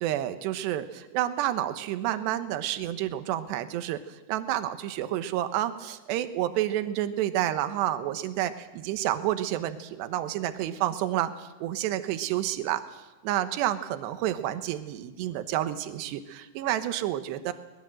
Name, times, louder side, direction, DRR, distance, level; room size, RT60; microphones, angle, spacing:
voice 1, 0.0-12.8 13.2-17.5, right 12 dB, 70° right, 10 dB, 2.8 m, -29 dB
23.0 x 20.5 x 7.7 m, 1.1 s
omnidirectional pair, 5.8 m